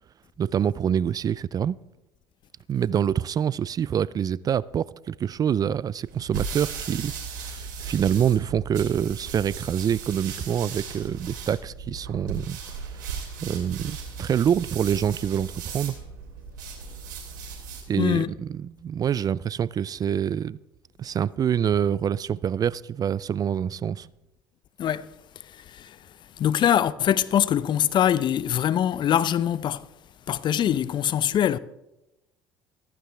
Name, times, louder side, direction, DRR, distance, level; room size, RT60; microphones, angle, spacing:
voice 1, 0.4-1.8 2.7-12.6 12.9-13.1 13.4-16.0 17.9-20.6 21.0-24.1, right 9 dB, 40° right, 0.4 m, -26 dB
sound 1, 6.0-17.9, right 6 dB, 85° right, 3.0 m, -37 dB
voice 2, 18.0-18.3 24.8-25.1 25.5-26.0 26.4-29.9 30.3-31.6, left 10 dB, 50° left, 0.6 m, -23 dB
15.0 x 14.5 x 3.4 m
hypercardioid pair, 65°, 10 cm